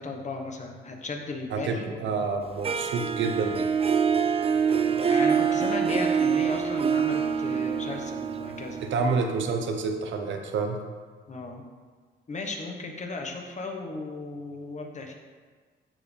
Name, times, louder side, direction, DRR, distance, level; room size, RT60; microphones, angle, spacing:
voice 1, 0.0-2.0 4.7-8.8 11.3-11.6 12.3-15.2, left 3 dB, 35° left, 3 dB, 1.3 m, -35 dB
voice 2, 1.5-3.7 8.9-10.8, right 4 dB, 70° right, 4 dB, 1.0 m, -28 dB
Harp, 2.6-9.5, right 6 dB, 30° right, 0.5 m, -25 dB
13.5 x 4.9 x 3.4 m, 1.5 s
cardioid pair, 90°, 20 cm